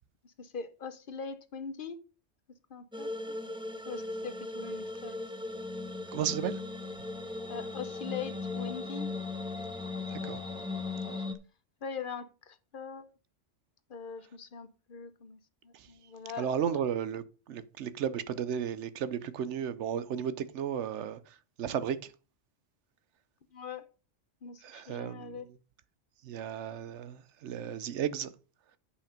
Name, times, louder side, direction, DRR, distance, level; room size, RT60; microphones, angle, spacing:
voice 1, 0.2-2.0 2.7-3.4 3.9-5.2 7.5-9.1 11.1-11.2 11.8-13.1 13.9-16.8 23.5-23.9 24.4-25.5, left 5 dB, 50° left, 0.9 m, -42 dB
sound 1, 2.9-11.4, left 3 dB, 5° right, 0.7 m, -38 dB
voice 2, 6.1-6.6 10.1-10.4 15.7-15.9 16.4-22.1 24.6-25.4 26.2-28.3, right 8 dB, 70° right, 1.0 m, -34 dB
sound 2, 6.3-11.3, left 7 dB, 65° left, 1.3 m, -50 dB
8.2 x 5.8 x 5.1 m
omnidirectional pair, 1.3 m